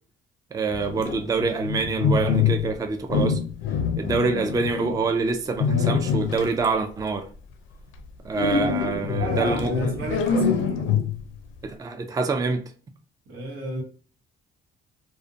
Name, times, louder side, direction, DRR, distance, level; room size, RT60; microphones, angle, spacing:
voice 1, 0.5-3.4 4.0-7.3 8.2-10.0 11.6-12.6, right 4 dB, 20° right, 0.4 m, -26 dB
sound 1, 0.7-2.7 3.1-5.0 5.6-6.6 8.4-11.3, left 6 dB, 85° left, 0.4 m, -25 dB
voice 2, 9.2-11.0 13.3-13.8, right 2 dB, 80° right, 0.9 m, -32 dB
2.5 x 2.1 x 2.5 m
cardioid pair, 90°, 20 cm